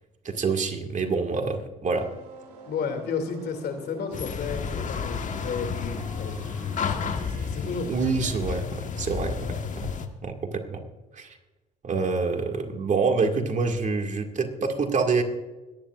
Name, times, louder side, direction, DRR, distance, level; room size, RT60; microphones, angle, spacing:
voice 1, 0.2-2.1 7.9-9.9 10.2-10.8 11.1-11.4 11.8-15.2, right 4 dB, 35° right, 4 dB, 2.0 m, -26 dB
sound 1, 1.9-8.6, right 4 dB, 90° right, 2.7 m, -48 dB
voice 2, 2.7-7.9, left 5 dB, 55° left, 6 dB, 2.6 m, -33 dB
sound 2, 4.1-10.1, left 6 dB, 40° left, 1.4 m, -31 dB
21.5 x 10.5 x 2.5 m, 1.2 s
hypercardioid pair, 70°, 20 cm